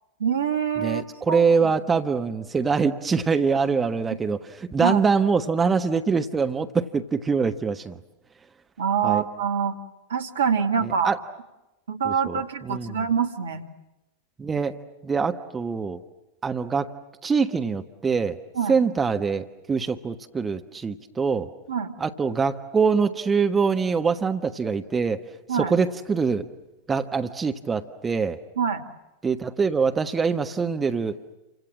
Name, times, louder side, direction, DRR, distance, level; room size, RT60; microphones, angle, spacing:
voice 1, 0.2-1.7 4.8-5.0 8.8-9.8 10.1-11.1 11.9-13.7 18.6-18.8 21.7-21.9 25.5-25.7 28.6-28.8, right 7 dB, 65° right, 7 dB, 2.0 m, -25 dB
voice 2, 0.8-8.0 9.0-9.2 10.8-11.2 12.0-13.0 14.4-16.0 16.4-16.9 17.2-18.4 18.7-21.5 22.0-25.2 25.5-26.5 26.9-28.4 29.2-31.2, right 5 dB, 15° right, 7 dB, 1.3 m, -24 dB
29.5 x 25.5 x 7.6 m, 0.99 s
figure-of-eight pair, 90°, 0 cm